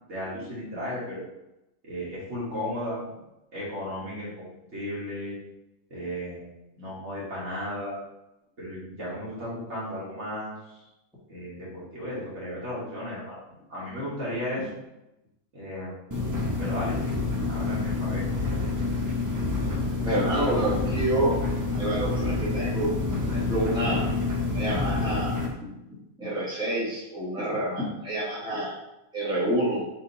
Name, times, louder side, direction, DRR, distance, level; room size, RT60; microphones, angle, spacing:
voice 1, 0.1-1.2 1.8-3.0 3.5-5.4 5.9-6.4 6.8-8.0 8.6-10.8 11.3-13.4 13.7-14.8 15.5-15.9 16.6-17.0 17.5-18.3 20.0-20.1, left 1 dB, 55° right, -7 dB, 1.7 m, -34 dB
sound 1, 16.1-25.5, left 3 dB, 30° right, 0.3 m, -28 dB
voice 2, 20.0-21.3 21.7-22.9 23.2-24.1 24.5-25.4 26.2-28.7 29.1-29.8, right 1 dB, 5° right, -8 dB, 1.3 m, -28 dB
4.3 x 2.7 x 3.9 m, 0.93 s
omnidirectional pair, 1.5 m